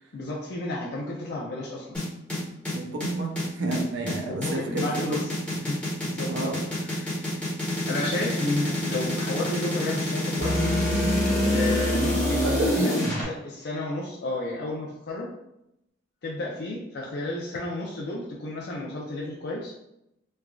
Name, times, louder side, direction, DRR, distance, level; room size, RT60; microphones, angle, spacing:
voice 1, 0.1-2.0 4.3-5.2 5.6-7.3 7.9-10.5 11.5-12.5 12.8-15.3 16.2-19.7, left 2 dB, 55° left, -3 dB, 0.4 m, -32 dB
sound 1, 1.9-13.2, left 1 dB, 5° left, 0.9 m, -27 dB
voice 2, 2.7-5.2 6.3-6.6 12.4-13.0, right 2 dB, 70° right, 2 dB, 0.5 m, -29 dB
sound 2, 10.4-13.3, equal, 85° right, 1.2 m, -28 dB
3.2 x 2.4 x 2.3 m, 0.83 s
head